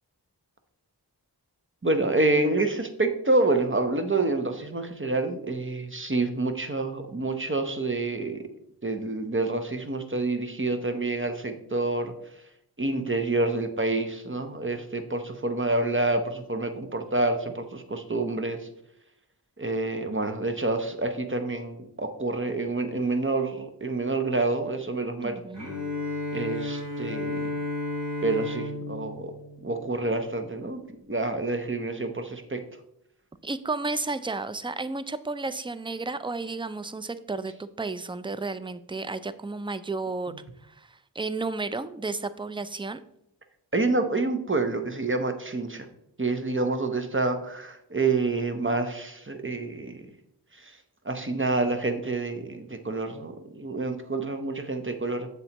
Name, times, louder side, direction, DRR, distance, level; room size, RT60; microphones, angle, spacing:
voice 1, 1.8-8.4 8.8-12.1 12.8-18.6 19.6-25.4 26.3-27.5 28.2-29.3 29.6-30.8 31.1-32.6 40.3-40.4 43.7-45.9 46.2-50.0 50.6-50.7 51.1-55.3, right 2 dB, 30° right, 7 dB, 0.9 m, -28 dB
voice 2, 25.2-25.7 33.4-40.3 40.6-43.0, right 3 dB, 15° right, 13 dB, 0.4 m, -32 dB
Bowed string instrument, 25.5-30.5, left 2 dB, 80° right, 3.1 m, -33 dB
7.7 x 7.1 x 3.0 m, 0.79 s
wide cardioid pair, 45°, 42 cm